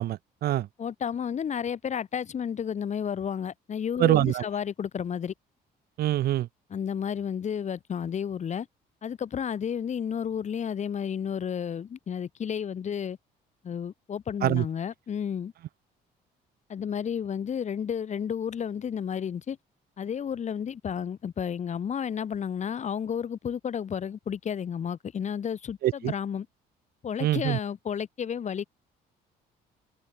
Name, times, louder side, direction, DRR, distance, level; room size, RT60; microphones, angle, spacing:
voice 1, 0.0-0.7 4.0-4.4 6.0-6.5 14.4-14.6 25.8-26.1 27.2-27.6, right 14 dB, 65° right, 1.6 m, -24 dB
voice 2, 0.8-5.3 6.7-8.7 9.0-13.2 13.6-15.5 16.7-19.6 20.0-26.5 27.0-28.6, left 8 dB, 45° left, 5.8 m, -32 dB
cardioid pair, 110°, 17 cm